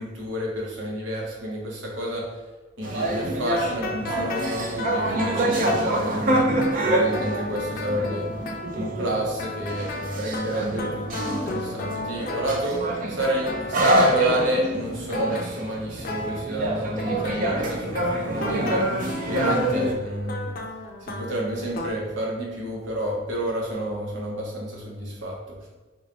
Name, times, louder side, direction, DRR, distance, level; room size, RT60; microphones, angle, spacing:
voice 1, 0.0-2.3 2.8-6.4 6.8-8.3 8.7-12.8 13.1-18.9 19.3-20.5 21.1-25.4, equal, 80° right, -2 dB, 0.9 m, -30 dB
sound 1, 2.8-19.9, right 1 dB, 45° right, 0.5 m, -26 dB
sound 2, 3.4-12.9 13.2-14.7 15.1-16.4 16.9-21.9, left 2 dB, 50° left, 0.5 m, -35 dB
3.0 x 2.3 x 3.9 m, 1.3 s
head